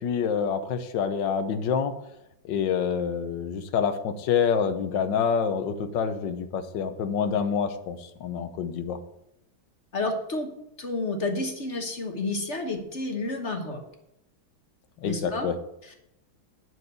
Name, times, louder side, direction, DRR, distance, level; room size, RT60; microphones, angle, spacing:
voice 1, 0.0-1.9 2.4-9.0 15.0-15.6, left 7 dB, 65° left, 9 dB, 1.5 m, -27 dB
voice 2, 9.9-10.5 10.8-13.8 15.0-15.5 15.8-16.0, left 2 dB, 40° left, 4 dB, 1.3 m, -30 dB
11.0 x 4.7 x 8.0 m, 0.84 s
omnidirectional pair, 2.3 m